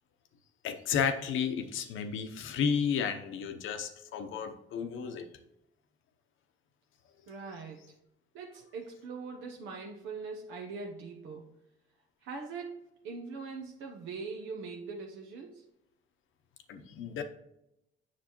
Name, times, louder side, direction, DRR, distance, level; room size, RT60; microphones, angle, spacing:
voice 1, 0.6-5.3 16.7-17.2, left 7 dB, 80° left, 8 dB, 0.8 m, -32 dB
voice 2, 7.3-7.9 8.3-11.5 12.2-15.6, right 4 dB, 90° right, 1 dB, 0.9 m, -42 dB
7.5 x 6.0 x 3.0 m, 0.84 s
cardioid pair, 90°, 20 cm